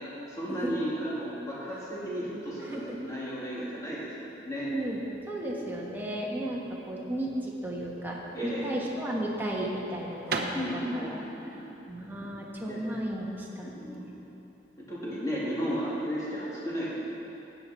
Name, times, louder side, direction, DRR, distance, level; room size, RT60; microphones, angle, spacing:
voice 1, 0.3-4.1 4.4-4.7 5.3-5.6 8.3-8.7 10.5-11.7 12.2-12.3 12.7-12.8 13.7-14.1 14.9-16.9, equal, 20° left, -8 dB, 2.8 m, -34 dB
voice 2, 4.5-6.6 6.9-11.2 11.9-14.0, right 1 dB, 10° right, -4 dB, 1.4 m, -34 dB
sound 1, 9.1-14.0, right 3 dB, 60° right, 0.8 m, -38 dB
13.5 x 8.5 x 4.4 m, 2.9 s
head